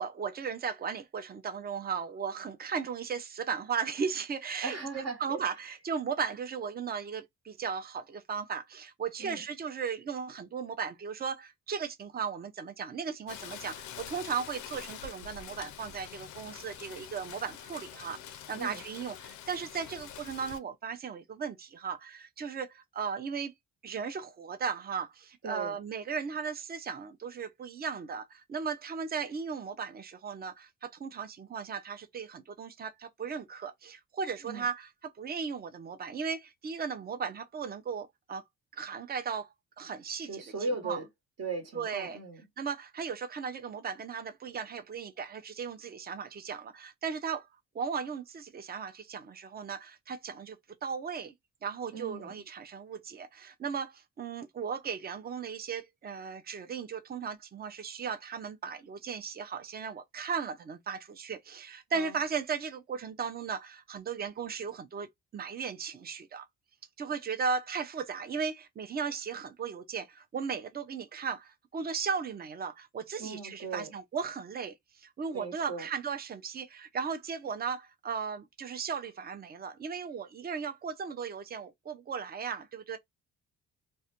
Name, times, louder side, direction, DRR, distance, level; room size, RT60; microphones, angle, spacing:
voice 1, 0.0-23.5 23.8-38.4 38.7-39.5 39.8-40.4 40.8-41.0 41.7-42.2 42.6-47.5 47.7-50.6 50.8-51.3 51.6-65.1 65.3-66.5 67.0-83.0, right 6 dB, 30° right, 0.5 m, -36 dB
voice 2, 4.6-5.4 9.2-9.4 18.5-18.8 25.4-25.8 34.4-34.7 40.3-41.1 41.4-42.4 51.9-52.3 61.9-62.1 73.2-73.9 75.3-75.9, right 3 dB, 55° right, 1.0 m, -38 dB
Rain, 13.3-20.6, left 10 dB, 75° left, 0.5 m, -46 dB
2.4 x 2.1 x 2.8 m
cardioid pair, 90°, 30 cm